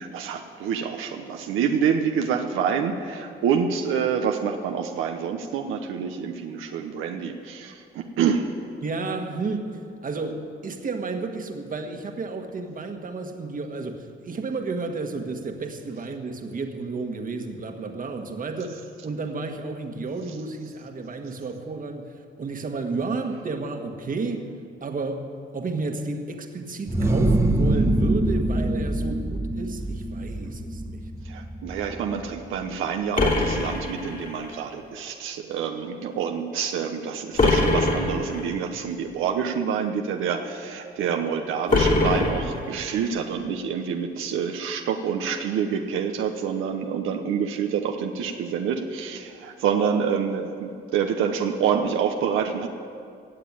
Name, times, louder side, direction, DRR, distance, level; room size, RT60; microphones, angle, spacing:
voice 1, 0.0-8.5 31.2-52.7, right 7 dB, 90° right, 4 dB, 0.9 m, -27 dB
voice 2, 8.8-24.5 24.8-31.1, right 3 dB, 45° right, 5 dB, 1.5 m, -32 dB
sound 1, 26.9-32.4, right 1 dB, 15° right, 1.2 m, -25 dB
sound 2, 33.1-34.5 37.4-38.5 41.7-43.0, left 2 dB, 40° left, 3.0 m, -23 dB
16.5 x 7.5 x 8.8 m, 2.3 s
cardioid pair, 90°, 20 cm